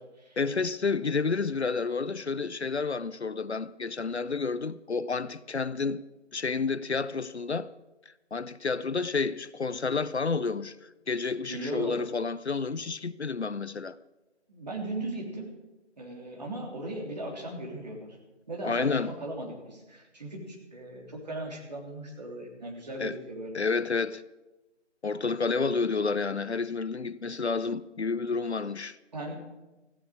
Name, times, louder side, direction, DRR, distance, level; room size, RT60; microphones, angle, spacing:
voice 1, 0.4-6.0 6.3-7.7 8.3-14.0 18.6-19.1 23.0-23.1 23.5-24.2 25.0-29.0, left 4 dB, 65° left, 0.6 m, -30 dB
voice 2, 11.4-12.0 14.5-15.5 16.0-18.2 18.5-23.6 29.1-29.4, right 1 dB, 35° right, 3.3 m, -37 dB
16.5 x 15.0 x 4.8 m
figure-of-eight pair, 160°, 35 cm